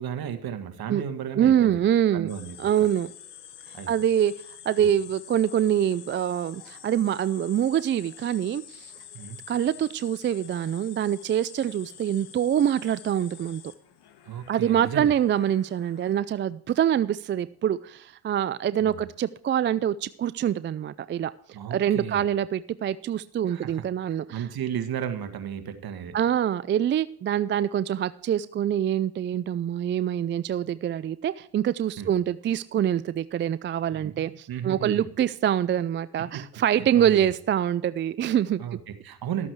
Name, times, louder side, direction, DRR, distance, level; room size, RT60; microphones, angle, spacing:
voice 1, 0.0-1.8 2.1-2.6 3.7-3.9 4.8-4.9 9.1-9.4 14.2-15.1 18.8-19.1 21.5-22.2 23.5-26.2 32.0-32.1 33.9-35.1 36.2-36.4 36.9-37.3 38.6-39.5, right 9 dB, 50° right, 8 dB, 1.7 m, -34 dB
voice 2, 1.4-2.3 2.6-3.1 3.9-4.3 4.7-8.9 9.5-13.6 14.5-21.3 21.7-24.4 26.1-38.6, right 10 dB, 25° right, 16 dB, 0.3 m, -25 dB
sound 1, 2.3-16.2, left 10 dB, 55° left, 1.5 m, -47 dB
12.5 x 8.4 x 4.7 m, 0.65 s
hypercardioid pair, 65°, 46 cm